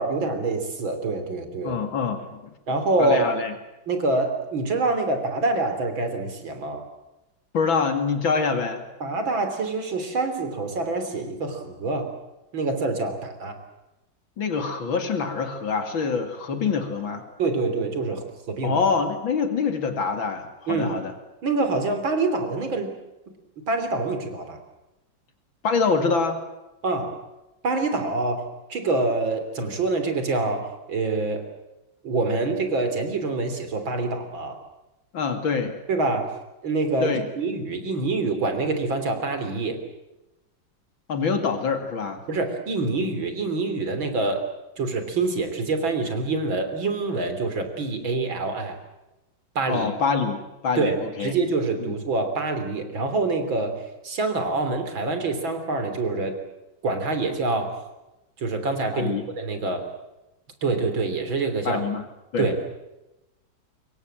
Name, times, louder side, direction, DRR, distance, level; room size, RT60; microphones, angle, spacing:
voice 1, 0.0-1.8 2.7-3.3 3.9-6.9 9.0-12.1 12.5-13.6 17.4-18.8 20.7-21.0 21.4-22.9 23.7-24.6 26.8-27.2 27.6-31.5 32.0-34.6 35.9-36.3 36.6-39.8 42.3-44.4 44.8-48.8 49.6-49.9 50.8-56.3 56.8-57.8 58.4-59.9 60.6-61.8 62.4-62.6, right 3 dB, 80° right, 7 dB, 4.1 m, -26 dB
voice 2, 1.6-2.5 3.0-3.5 7.5-8.8 14.4-17.2 18.6-21.1 25.6-26.4 35.1-35.7 37.0-37.3 41.1-42.2 49.7-51.3 51.8-51.9 58.9-59.2 61.6-62.0 62.3-62.5, left 5 dB, 80° left, 7 dB, 3.2 m, -25 dB
25.5 x 23.0 x 7.7 m, 0.95 s
omnidirectional pair, 2.1 m